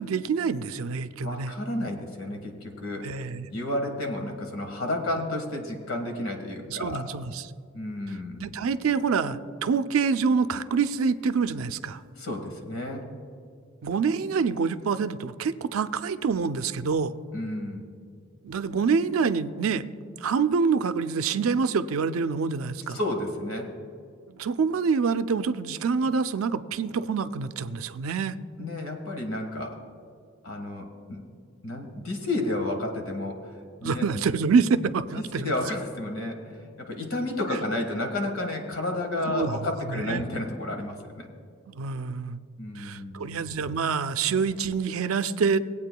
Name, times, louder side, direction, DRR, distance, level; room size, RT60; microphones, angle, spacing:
voice 1, 0.0-1.5 3.0-3.5 6.7-7.4 8.4-12.0 13.8-17.1 18.4-19.9 20.2-23.0 24.3-28.4 33.8-35.5 39.3-40.3 41.7-42.4 42.8-45.6, right 5 dB, 85° right, 12 dB, 0.4 m, -26 dB
voice 2, 1.2-3.0 3.5-7.0 7.7-8.4 12.2-13.1 17.3-17.8 22.9-23.7 28.6-29.8 30.4-31.2 31.6-34.1 35.1-41.3 42.6-43.3, left 1 dB, 85° left, 4 dB, 1.5 m, -31 dB
21.0 x 8.6 x 2.2 m, 2.3 s
head